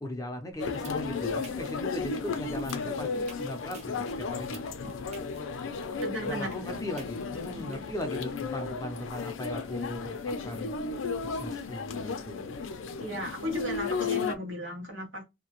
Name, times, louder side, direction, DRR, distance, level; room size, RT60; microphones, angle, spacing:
voice 1, 0.0-4.6 6.2-10.8 11.2-12.5, left 1 dB, 15° left, 0.5 m, -38 dB
sound 1, 0.5-7.7, right 4 dB, 35° right, 0.6 m, -49 dB
sound 2, 0.6-14.4, left 4 dB, 80° left, 0.4 m, -34 dB
voice 2, 6.0-6.7 7.5-7.8 13.0-15.3, equal, 70° right, 1.2 m, -36 dB
2.7 x 2.1 x 2.9 m
head